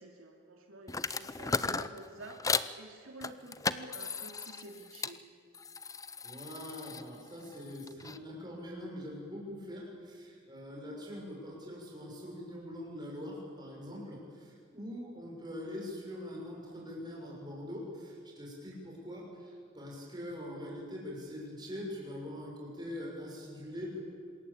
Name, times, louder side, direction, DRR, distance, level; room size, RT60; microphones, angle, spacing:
voice 1, 0.0-5.2, right 2 dB, 75° right, 1 dB, 2.8 m, -50 dB
sound 1, 0.9-2.7 3.2-5.2 5.5-8.2, left 4 dB, 15° left, 0.6 m, -36 dB
voice 2, 6.2-24.0, left 1 dB, 20° right, -2 dB, 6.7 m, -43 dB
26.5 x 21.0 x 8.7 m, 2.1 s
head